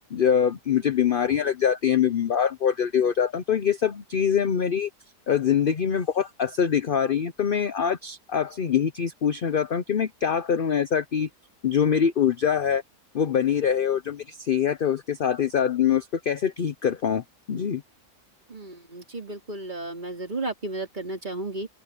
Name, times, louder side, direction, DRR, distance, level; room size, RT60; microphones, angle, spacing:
voice 1, 0.1-4.9 5.3-11.3 11.6-12.8 13.1-17.8, left 8 dB, 50° left, 0.6 m, -24 dB
voice 2, 18.5-21.7, right 2 dB, 25° right, 3.8 m, -33 dB
open air
omnidirectional pair, 1.7 m